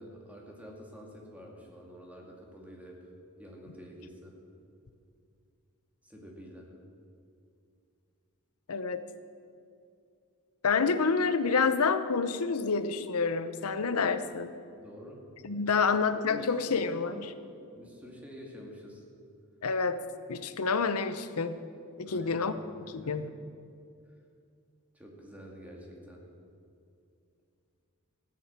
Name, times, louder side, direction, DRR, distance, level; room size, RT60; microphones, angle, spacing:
voice 1, 0.0-3.1 3.4-4.4 6.0-6.7 14.8-15.2 15.7-17.2 17.7-19.0 22.1-22.5 22.8-23.2 24.9-26.3, equal, 5° right, -1 dB, 2.1 m, -48 dB
voice 2, 8.7-9.0 10.6-14.5 15.4-17.3 19.6-20.0 20.3-21.6 22.0-22.5 22.9-23.2, left 5 dB, 80° left, 11 dB, 0.8 m, -28 dB
14.5 x 8.7 x 7.4 m, 2.4 s
head